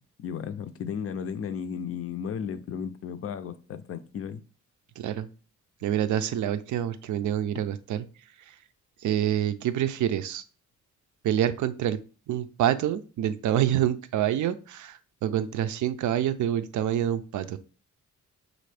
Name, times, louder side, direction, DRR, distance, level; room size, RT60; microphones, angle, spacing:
voice 1, 0.2-4.4, left 7 dB, 50° left, 0.4 m, -34 dB
voice 2, 5.0-5.3 5.8-8.1 8.5-8.6 9.0-10.4 11.2-12.0 12.3-17.6, right 10 dB, 75° right, 0.5 m, -27 dB
6.3 x 2.6 x 3.3 m
wide cardioid pair, 150°, 30 cm